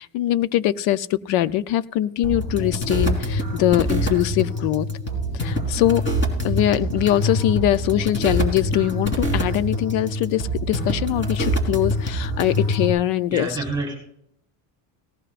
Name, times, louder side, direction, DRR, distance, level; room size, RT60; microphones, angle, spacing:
voice 1, 0.0-4.9 5.3-6.0 6.4-13.6, left 13 dB, 80° left, 15 dB, 0.8 m, -22 dB
sound 1, 2.2-12.9, equal, 25° left, 3.7 m, -25 dB
voice 2, 13.3-13.9, right 3 dB, 10° right, -2 dB, 3.7 m, -27 dB
18.0 x 16.5 x 2.5 m, 0.71 s
cardioid pair, 130°, 45 cm